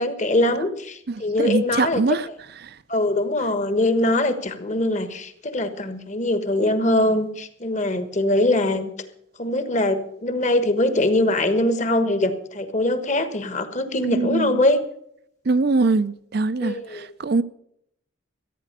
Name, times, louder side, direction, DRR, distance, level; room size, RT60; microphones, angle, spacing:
voice 1, 0.0-2.0 2.9-8.9 9.4-14.8 16.6-17.1, left 1 dB, 35° left, 1.3 m, -22 dB
voice 2, 1.1-2.3 2.6-2.7 14.0-14.6 15.5-17.4, right 3 dB, 55° right, 0.5 m, -23 dB
14.5 x 9.3 x 6.7 m
head